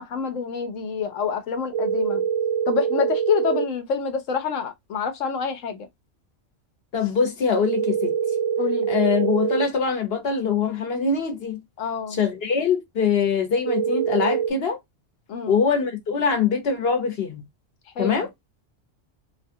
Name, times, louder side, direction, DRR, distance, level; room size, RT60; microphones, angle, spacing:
voice 1, 0.0-2.2 2.7-5.9 8.6-8.9 11.8-12.2 15.3-15.6 18.0-18.3, left 6 dB, 85° left, 1.2 m, -27 dB
sound 1, 1.7-3.7 7.7-9.7 13.7-14.5, right 8 dB, 75° right, 1.1 m, -24 dB
voice 2, 6.9-8.2 8.9-11.6 12.1-14.8 15.5-17.4 18.0-18.3, left 5 dB, 55° left, 1.1 m, -23 dB
2.8 x 2.4 x 2.6 m
omnidirectional pair, 1.3 m